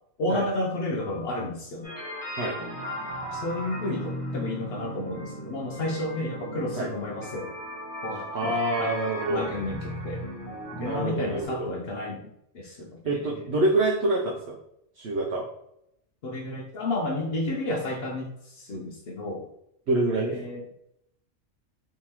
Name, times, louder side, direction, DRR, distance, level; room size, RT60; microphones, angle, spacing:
voice 1, 0.2-1.9 3.3-7.5 8.0-8.9 9.3-10.3 10.8-12.2 12.5-13.4 16.2-19.5 20.2-20.6, left 2 dB, 60° left, 1 dB, 0.7 m, -32 dB
sound 1, 1.8-11.5, equal, 15° left, 1.1 m, -36 dB
voice 2, 8.3-9.5 10.8-11.7 13.0-14.6 14.9-15.5 19.9-20.4, right 2 dB, 65° right, -3 dB, 0.8 m, -26 dB
3.5 x 3.0 x 2.9 m, 0.77 s
omnidirectional pair, 1.3 m